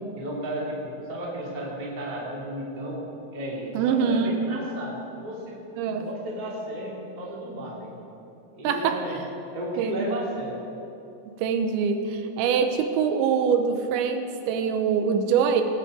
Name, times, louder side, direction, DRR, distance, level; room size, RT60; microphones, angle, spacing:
voice 1, 0.2-5.6 5.8-7.9 8.5-9.2 9.5-10.6, right 1 dB, 15° right, -5 dB, 1.5 m, -33 dB
voice 2, 3.7-4.4 5.8-6.1 8.6-9.2 9.8-10.1 11.4-15.6, right 6 dB, 90° right, 6 dB, 3.1 m, -24 dB
19.5 x 8.7 x 4.9 m, 2.9 s
omnidirectional pair, 5.2 m